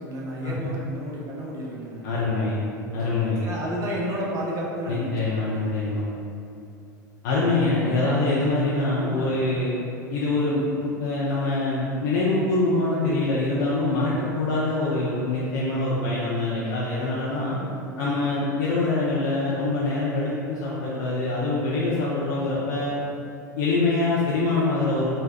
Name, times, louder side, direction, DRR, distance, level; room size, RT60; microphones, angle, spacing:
voice 1, 0.0-2.1 3.4-5.1 17.8-18.1, equal, 35° right, -4 dB, 0.7 m, -31 dB
voice 2, 2.0-2.6 2.9-3.4 4.9-6.1 7.2-9.7 10.1-17.6 18.0-23.0 23.6-25.1, left 2 dB, 65° left, -8 dB, 0.5 m, -24 dB
3.9 x 2.2 x 2.5 m, 2.6 s
hypercardioid pair, 85°, 10 cm